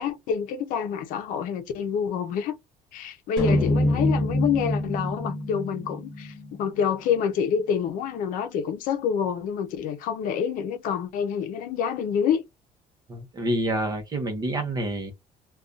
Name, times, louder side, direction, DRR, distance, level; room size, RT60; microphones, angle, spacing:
voice 1, 0.0-2.6 2.9-12.4, left 7 dB, 70° left, 0.6 m, -27 dB
sound 1, 3.4-7.7, left 1 dB, 5° left, 1.4 m, -27 dB
voice 2, 13.1-15.1, right 1 dB, 25° right, 0.8 m, -28 dB
2.6 x 2.3 x 3.5 m
cardioid pair, 180°, 15 cm